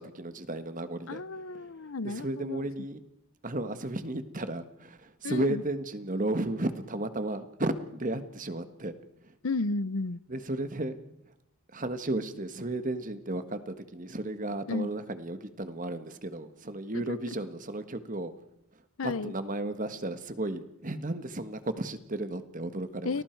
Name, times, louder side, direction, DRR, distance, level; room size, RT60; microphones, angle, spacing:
voice 1, 0.0-1.2 1.6-1.7 2.0-3.0 3.4-8.9 10.3-11.0 11.7-18.3 19.0-23.2, right 2 dB, 35° right, 10 dB, 1.5 m, -34 dB
voice 2, 1.1-2.7 5.2-5.6 9.4-10.2 14.7-14.9 16.9-17.2 19.0-19.3 23.0-23.2, left 3 dB, 65° left, 18 dB, 0.7 m, -33 dB
30.0 x 20.0 x 4.6 m, 0.81 s
head